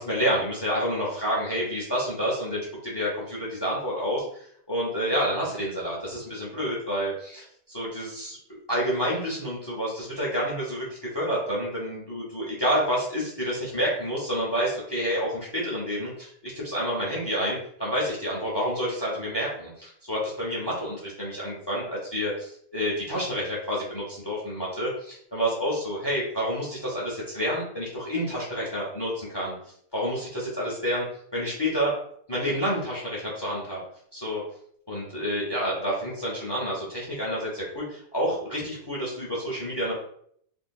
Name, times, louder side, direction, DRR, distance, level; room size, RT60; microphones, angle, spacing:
voice 1, 0.0-8.4 8.7-29.5 29.9-31.1 31.3-31.9 32.3-33.8 34.1-34.4 34.9-39.9, equal, 35° left, -4 dB, 0.4 m, -29 dB
3.6 x 2.6 x 2.3 m, 0.65 s
omnidirectional pair, 1.7 m